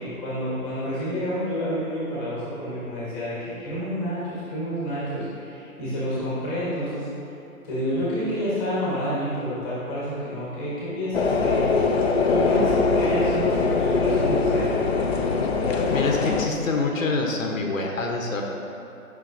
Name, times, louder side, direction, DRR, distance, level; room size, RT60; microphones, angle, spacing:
voice 1, 0.0-7.1 7.6-11.7 12.3-14.8, equal, 10° left, -9 dB, 1.2 m, -29 dB
sound 1, 11.1-16.5, left 4 dB, 45° left, 0.5 m, -22 dB
voice 2, 15.9-18.4, left 3 dB, 65° left, 1 dB, 1.0 m, -26 dB
9.2 x 5.5 x 2.6 m, 2.9 s
hypercardioid pair, 155°, 43 cm